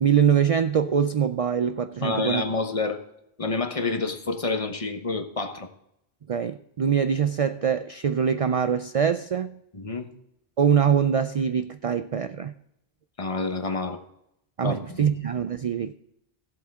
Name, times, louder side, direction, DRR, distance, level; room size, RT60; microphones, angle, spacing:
voice 1, 0.0-2.4 6.3-9.6 10.6-12.5 14.6-15.9, right 7 dB, 50° right, 0.4 m, -23 dB
voice 2, 2.0-3.0 3.4-5.7 9.7-10.1 13.2-14.0 14.6-15.1, left 3 dB, 35° left, 1.1 m, -28 dB
16.0 x 7.8 x 3.6 m
omnidirectional pair, 1.0 m